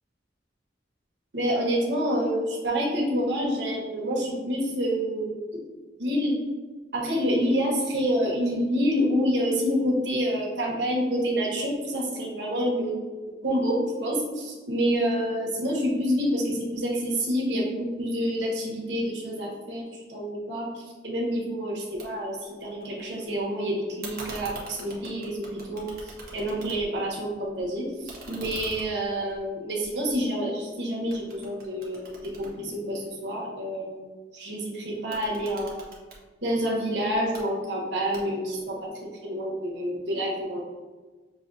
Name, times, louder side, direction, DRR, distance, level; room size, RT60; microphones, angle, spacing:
voice 1, 1.3-5.5 6.0-6.3 6.9-12.9 13.3-19.8 20.1-34.0 34.3-35.7 36.4-38.9 39.2-40.6, equal, 90° right, -3 dB, 1.1 m, -28 dB
sound 1, 22.0-22.1 22.4-23.2 24.0-27.1 27.4-30.7 31.1-33.3 34.9-36.2 37.1-37.4 38.1-38.6, right 2 dB, 55° right, 0.9 m, -44 dB
6.2 x 2.7 x 2.6 m, 1.3 s
head